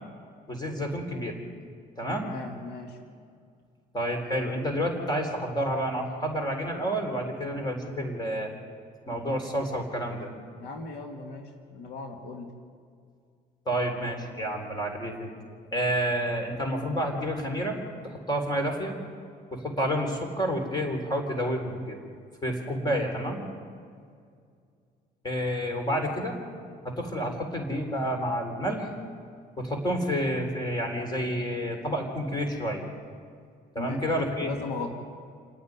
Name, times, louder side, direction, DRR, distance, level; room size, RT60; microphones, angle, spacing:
voice 1, 0.5-1.4 2.0-2.3 3.9-8.5 9.1-10.3 13.7-15.3 15.7-17.8 18.0-18.9 19.5-22.0 22.4-23.4 25.2-26.4 26.8-28.9 29.6-32.8 33.7-34.5, equal, 25° left, 3 dB, 4.2 m, -29 dB
voice 2, 2.2-3.0 10.6-11.4 11.7-12.5 33.8-34.0 34.4-35.0, left 4 dB, 80° left, 3 dB, 2.2 m, -37 dB
28.5 x 9.6 x 9.7 m, 2.2 s
cardioid pair, 110°, 17 cm